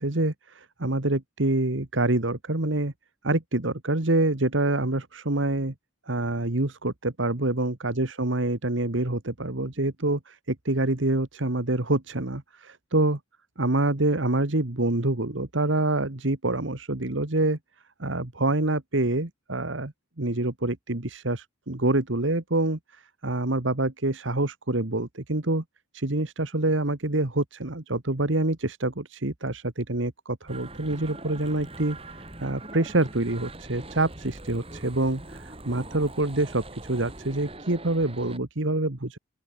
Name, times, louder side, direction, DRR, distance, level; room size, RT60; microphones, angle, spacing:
voice 1, 0.0-2.9 3.2-5.7 6.1-13.2 13.6-17.6 18.0-25.6 25.9-39.2, right 2 dB, 70° right, 1.8 m, -26 dB
sound 1, 30.5-38.4, right 2 dB, 30° right, 5.7 m, -42 dB
open air
head